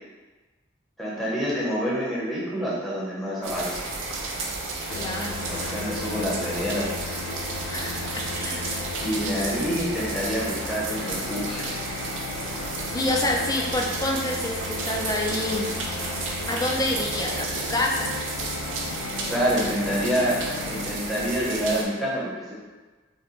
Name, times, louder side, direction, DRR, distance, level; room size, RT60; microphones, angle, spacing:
voice 1, 1.0-3.8 5.5-6.9 9.0-11.7 19.3-20.4 20.6-22.5, equal, ahead, -8 dB, 0.9 m, -27 dB
sound 1, 3.4-21.8, right 3 dB, 80° right, 0.6 m, -32 dB
sound 2, 4.9-20.9, left 4 dB, 85° left, 0.3 m, -36 dB
voice 2, 4.9-5.5 7.7-8.9 9.2-9.7 12.9-15.7 16.5-18.1, left 1 dB, 20° left, -1 dB, 0.4 m, -28 dB
4.9 x 2.2 x 3.1 m, 1.3 s
head